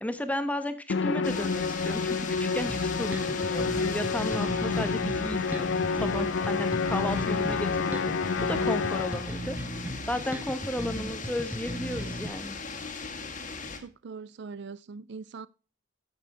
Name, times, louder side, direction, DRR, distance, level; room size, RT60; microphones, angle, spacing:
voice 1, 0.0-12.6, left 1 dB, 10° left, 1.1 m, -34 dB
Musical instrument, 0.9-9.4, left 5 dB, 70° left, 0.5 m, -29 dB
sound 1, 1.2-13.8, left 4 dB, 40° left, 2.0 m, -39 dB
sound 2, 2.7-12.3, equal, 10° right, 1.4 m, -37 dB
voice 2, 13.8-15.5, right 4 dB, 60° right, 0.4 m, -41 dB
14.0 x 6.8 x 4.8 m
head